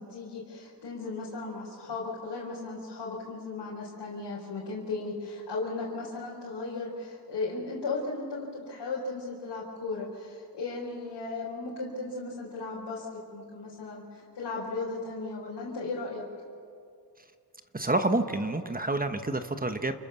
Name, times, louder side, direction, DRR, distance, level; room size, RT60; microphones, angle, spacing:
voice 1, 0.0-16.2, left 3 dB, 85° left, -5 dB, 4.7 m, -36 dB
voice 2, 17.7-20.0, right 2 dB, 20° right, 8 dB, 1.2 m, -28 dB
29.0 x 28.5 x 7.1 m, 2.3 s
wide cardioid pair, 150°, 41 cm